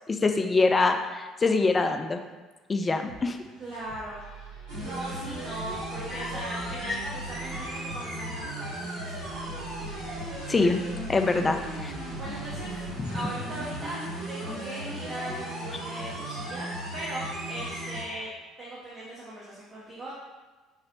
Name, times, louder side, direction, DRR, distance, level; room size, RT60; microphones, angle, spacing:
voice 1, 0.1-2.2 2.7-3.4 6.1-6.3 6.9-7.0 10.5-10.8 11.1-11.9 13.0-13.3, left 3 dB, 25° left, 6 dB, 0.3 m, -25 dB
sound 1, 3.1-13.9, right 2 dB, 85° right, 0.6 m, -46 dB
voice 2, 3.6-9.4 9.7-10.5 11.3-11.7 12.1-12.7 13.1-14.0 14.3-18.3 18.6-20.1, right 1 dB, 35° right, -7 dB, 0.8 m, -39 dB
sound 2, 4.7-18.0, right 1 dB, 70° right, 1.2 m, -36 dB
4.0 x 2.0 x 2.8 m, 1.3 s
figure-of-eight pair, 55°, 0 cm